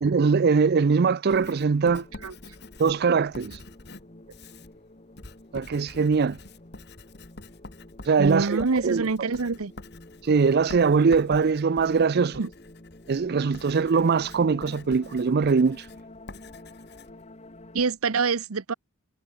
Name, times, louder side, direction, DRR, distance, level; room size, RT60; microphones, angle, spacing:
voice 1, 0.0-2.0 2.8-3.6 5.5-6.4 8.1-9.1 10.2-12.4 13.1-15.8, right 5 dB, 50° right, 0.4 m, -22 dB
Writing, 1.3-17.9, left 2 dB, 50° left, 2.5 m, -47 dB
sound 1, 1.8-17.8, left 1 dB, 30° left, 1.7 m, -49 dB
voice 2, 8.2-9.7 12.4-12.5 17.7-18.7, right 4 dB, 85° right, 0.9 m, -26 dB
head